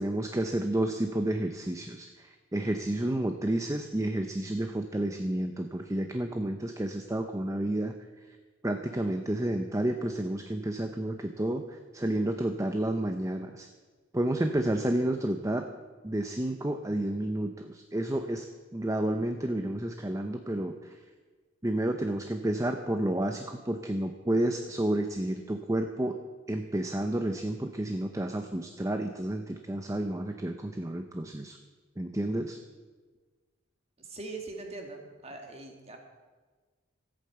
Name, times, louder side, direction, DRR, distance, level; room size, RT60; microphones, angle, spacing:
voice 1, 0.0-7.9 8.3-8.4 8.6-13.7 14.1-15.7 16.0-18.5 18.7-21.0 21.6-26.2 26.5-31.6 32.0-32.6, right 1 dB, 15° right, 6 dB, 0.6 m, -30 dB
voice 2, 34.0-36.0, right 3 dB, 30° right, 2 dB, 2.0 m, -42 dB
13.5 x 8.7 x 7.8 m, 1.4 s
head